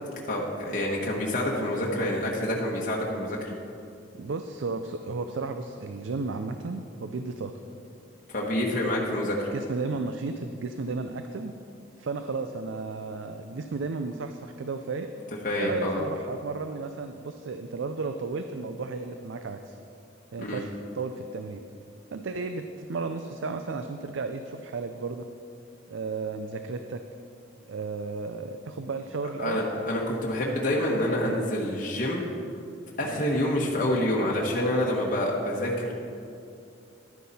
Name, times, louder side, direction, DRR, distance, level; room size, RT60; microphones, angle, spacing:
voice 1, 0.3-3.5 8.3-9.5 15.4-16.0 20.4-20.6 29.4-32.2 33.0-35.9, left 1 dB, 45° left, -3 dB, 1.1 m, -27 dB
voice 2, 4.1-7.5 9.5-11.5 12.0-15.1 15.6-19.8 20.3-20.7 20.9-21.6 22.1-25.3 25.9-27.0 27.7-29.7 31.2-31.4 33.0-33.2, right 4 dB, 70° right, 7 dB, 0.4 m, -33 dB
11.5 x 9.3 x 4.2 m, 2.5 s
head